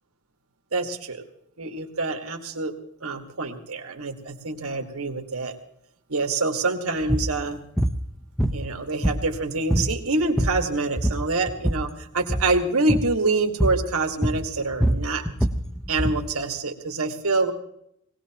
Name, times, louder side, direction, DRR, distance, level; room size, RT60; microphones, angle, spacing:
voice 1, 0.7-1.2 1.6-2.7 3.0-5.6 6.1-7.6 8.5-15.2 15.9-17.5, right 3 dB, 80° right, 3 dB, 1.8 m, -26 dB
sound 1, 7.0-7.3 7.8-8.0 8.4-9.4 9.7-9.9 10.2-10.7 11.0-11.9 12.2-12.5 12.9-13.1 13.6-13.9 14.2-16.2, equal, ahead, 0.6 m, -24 dB
21.0 x 18.0 x 3.0 m, 0.74 s
head